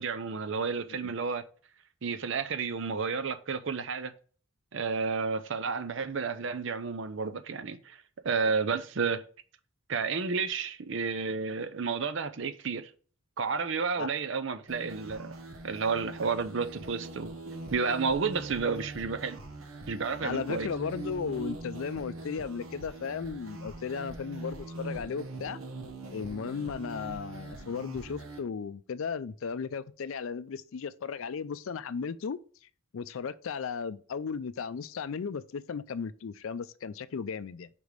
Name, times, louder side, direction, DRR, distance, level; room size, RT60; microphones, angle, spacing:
voice 1, 0.0-1.4 2.0-4.1 4.7-9.2 9.9-12.9 13.4-15.3 15.6-17.3 17.7-19.4 19.9-20.7, right 5 dB, 60° right, 0.6 m, -31 dB
sound 1, 14.7-28.4, right 2 dB, 80° right, 1.2 m, -42 dB
voice 2, 20.2-25.6 26.1-32.4 32.9-37.7, left 6 dB, 70° left, 0.4 m, -35 dB
5.2 x 4.9 x 5.1 m
head